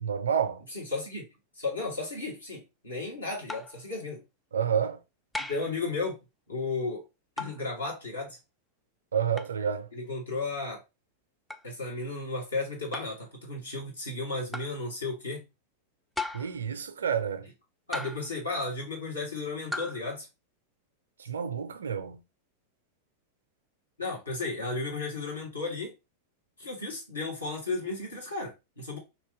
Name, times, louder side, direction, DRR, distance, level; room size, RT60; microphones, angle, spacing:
voice 1, 0.0-0.6 4.5-5.0 9.1-9.9 16.3-17.5 21.2-22.2, right 7 dB, 70° right, 0.5 m, -29 dB
voice 2, 0.7-1.3 1.6-4.2 5.4-6.2 6.5-7.0 7.4-8.4 9.9-10.8 11.6-15.4 17.9-20.3 24.0-25.9 26.6-29.0, left 3 dB, 80° left, 1.7 m, -34 dB
sound 1, 3.5-3.8 5.3-5.7 7.4-7.7 9.4-9.6 11.5-11.7 12.9-13.2 14.5-14.8 16.2-16.6 17.9-18.4 19.7-20.0, left 2 dB, 5° left, 0.4 m, -36 dB
3.3 x 2.8 x 3.5 m
figure-of-eight pair, 90°, 0 cm